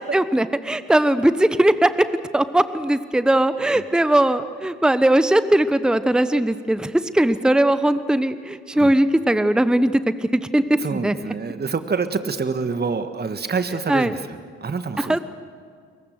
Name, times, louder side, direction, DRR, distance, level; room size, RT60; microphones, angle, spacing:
voice 1, 0.0-2.1 2.3-11.1 13.9-14.2 15.0-15.2, right 1 dB, ahead, 13 dB, 1.1 m, -19 dB
voice 2, 10.8-15.2, right 5 dB, 25° right, 10 dB, 1.6 m, -27 dB
28.5 x 22.5 x 6.5 m, 2.1 s
figure-of-eight pair, 45°, 36 cm